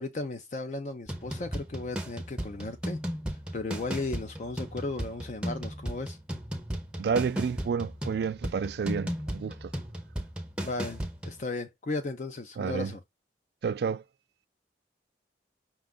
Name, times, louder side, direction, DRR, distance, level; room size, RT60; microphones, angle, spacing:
voice 1, 0.0-3.0 3.3-6.2 10.6-13.0, left 3 dB, 40° left, 0.4 m, -35 dB
sound 1, 1.1-11.4, equal, 5° right, 0.6 m, -36 dB
voice 2, 7.0-9.7 12.6-12.9 13.6-14.0, right 6 dB, 60° right, 0.3 m, -30 dB
5.6 x 2.4 x 3.6 m
head